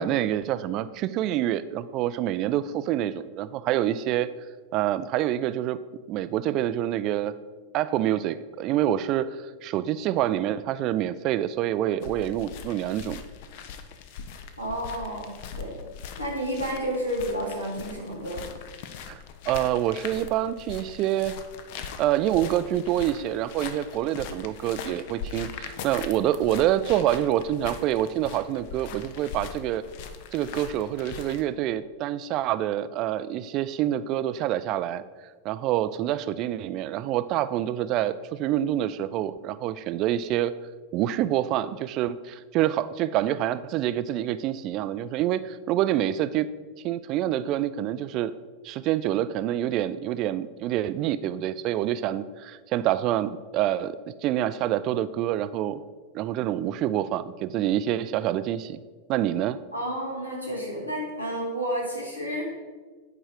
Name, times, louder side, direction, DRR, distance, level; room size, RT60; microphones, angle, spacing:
voice 1, 0.0-4.3 4.7-5.8 6.1-7.3 7.7-13.2 19.1-19.2 19.5-21.3 22.0-29.8 30.3-35.0 35.4-40.5 40.9-46.5 46.8-48.3 48.6-55.8 56.1-58.8 59.1-59.6, right 12 dB, 40° right, 14 dB, 0.3 m, -26 dB
sound 1, 12.0-31.4, left 7 dB, 50° left, 0.6 m, -41 dB
voice 2, 14.6-15.8 16.2-18.5 59.7-62.5, equal, 85° left, -2 dB, 2.0 m, -31 dB
8.8 x 4.8 x 4.7 m, 1.4 s
figure-of-eight pair, 90°, 0 cm